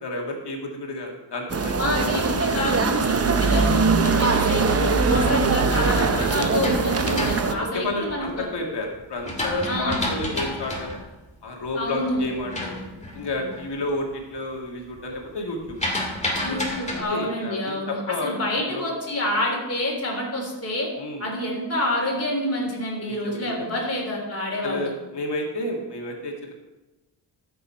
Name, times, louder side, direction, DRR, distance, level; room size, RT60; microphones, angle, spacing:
voice 1, 0.0-2.7 4.1-4.3 6.9-11.0 11.4-12.8 13.1-15.6 16.4-16.6 16.9-18.4 18.7-18.9 21.0-21.2 23.1-23.7 24.6-26.5, left 2 dB, 70° left, 0 dB, 2.1 m, -31 dB
sound 1, 1.5-7.5, right 4 dB, 35° right, 0.7 m, -21 dB
voice 2, 1.8-8.5 9.6-10.0 11.7-12.2 16.4-20.9 21.2-24.9, left 1 dB, 35° left, -2 dB, 3.6 m, -27 dB
sound 2, 5.1-8.4 8.9-13.8 14.1-14.5 14.8-17.0, left 1 dB, 15° left, 2.1 m, -31 dB
13.5 x 6.8 x 4.4 m, 1.1 s
wide cardioid pair, 120°, 43 cm